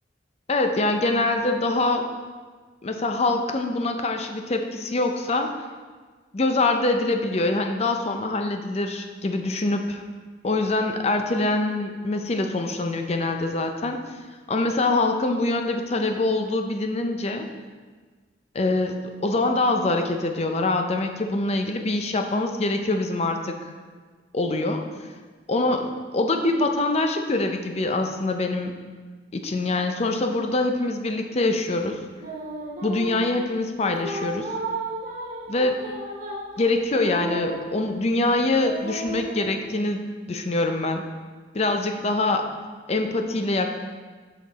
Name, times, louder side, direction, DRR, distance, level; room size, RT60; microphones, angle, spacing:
voice 1, 0.5-2.1 2.8-5.5 6.3-10.0 10.4-14.0 14.5-17.5 18.5-23.7 24.3-24.8 25.5-28.7 29.3-32.0 32.8-34.5 35.5-35.9 36.6-41.0 41.5-42.5 42.9-43.7, left 2 dB, 35° left, 5 dB, 0.5 m, -24 dB
sound 1, 32.2-33.3 33.8-38.1 38.6-39.4, right 2 dB, 45° right, 1.4 m, -34 dB
6.5 x 5.7 x 4.1 m, 1.4 s
head